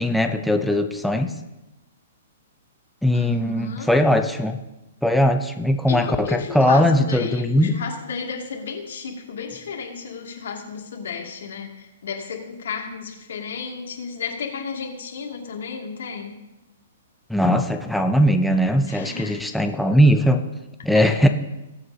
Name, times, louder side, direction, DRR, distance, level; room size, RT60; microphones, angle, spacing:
voice 1, 0.0-1.3 3.0-4.6 5.0-7.8 17.3-20.4 20.8-21.3, equal, ahead, 5 dB, 0.5 m, -19 dB
voice 2, 3.1-3.9 5.9-16.4 18.9-19.4 20.9-21.0, left 6 dB, 80° left, 1 dB, 2.4 m, -33 dB
20.5 x 7.8 x 2.8 m, 0.98 s
hypercardioid pair, 165°, 0 cm